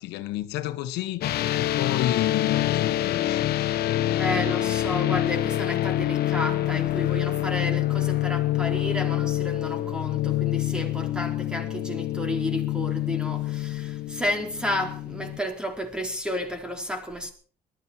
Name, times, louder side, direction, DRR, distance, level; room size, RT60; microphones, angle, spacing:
voice 1, 0.0-4.7, left 13 dB, 90° left, 1.3 m, -32 dB
sound 1, 1.2-15.4, left 14 dB, 70° left, 1.1 m, -26 dB
voice 2, 4.1-17.3, left 1 dB, 5° right, 4.4 m, -32 dB
21.0 x 13.0 x 4.5 m
cardioid pair, 110°, 17 cm